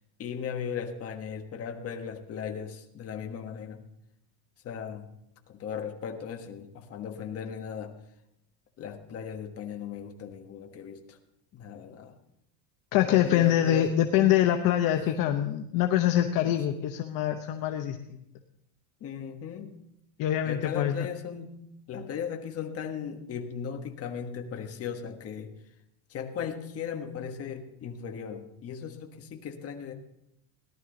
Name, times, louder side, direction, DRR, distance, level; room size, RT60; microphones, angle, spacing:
voice 1, 0.2-3.8 4.6-5.1 5.5-8.0 8.8-11.2 11.5-12.1 13.0-13.9 14.9-15.1 16.5-16.6 19.0-19.8 20.4-21.6 21.9-25.5 26.1-29.9, left 7 dB, 30° left, 4 dB, 1.5 m, -37 dB
voice 2, 12.9-18.2 20.2-21.1, left 11 dB, 50° left, 5 dB, 0.9 m, -25 dB
18.0 x 12.0 x 3.9 m, 0.79 s
cardioid pair, 160°, 44 cm